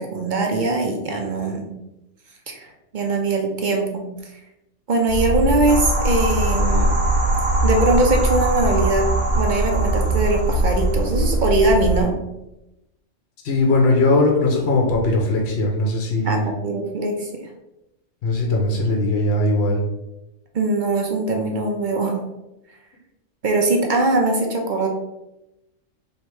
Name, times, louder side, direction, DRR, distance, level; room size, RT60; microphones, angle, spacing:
voice 1, 0.0-1.7 2.5-4.1 4.9-6.9 7.6-9.1 9.3-12.1 16.2-17.3 20.5-22.3 23.4-24.9, right 2 dB, 50° right, 2 dB, 0.6 m, -21 dB
sound 1, 5.1-12.0, right 1 dB, 80° right, 1.0 m, -21 dB
sound 2, 5.7-11.4, right 1 dB, 25° right, 0.8 m, -28 dB
voice 2, 13.4-16.4 18.2-19.8, left 2 dB, 60° left, -1 dB, 1.0 m, -19 dB
3.2 x 3.0 x 4.6 m, 0.93 s
omnidirectional pair, 1.3 m